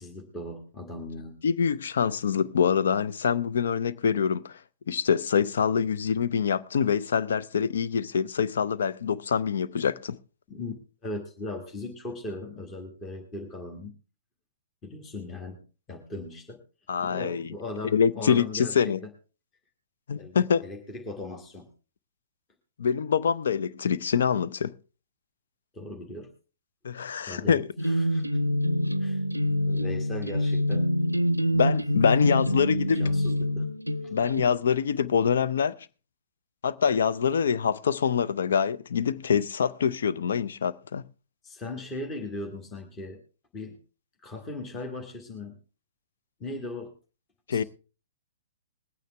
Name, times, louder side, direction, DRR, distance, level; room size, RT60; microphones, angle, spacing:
voice 1, 0.0-1.4 10.5-10.7 11.0-13.9 14.8-15.6 15.9-16.6 17.0-19.1 20.1-21.7 25.7-26.3 27.3-28.2 29.0-29.2 29.6-30.9 32.7-33.7 34.0-34.1 41.4-43.2 43.5-43.8 44.2-45.6 46.4-46.9 47.5-47.6, left 2 dB, 20° left, 1.6 m, -38 dB
voice 2, 1.4-4.5 4.9-10.2 16.9-17.5 17.9-19.0 20.1-20.6 22.8-24.7 26.8-27.7 31.5-33.0 34.1-35.7 36.6-41.0 47.5-47.6, left 7 dB, 60° left, 0.6 m, -25 dB
sound 1, 27.8-34.4, left 1 dB, 90° right, 0.5 m, -26 dB
21.0 x 9.2 x 3.4 m
figure-of-eight pair, 115°, 0 cm